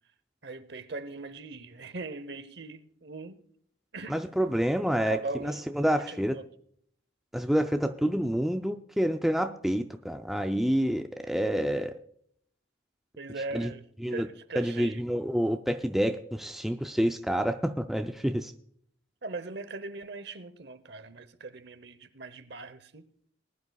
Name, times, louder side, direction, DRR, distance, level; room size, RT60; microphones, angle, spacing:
voice 1, 0.4-3.4 3.9-4.2 4.9-5.7 6.1-6.4 13.2-13.8 14.1-15.0 19.2-23.0, right 3 dB, 55° right, 0.9 m, -40 dB
voice 2, 4.1-6.4 7.3-11.9 13.5-13.7 14.0-14.3 14.6-18.5, equal, ahead, 0.4 m, -28 dB
20.5 x 11.0 x 2.3 m
head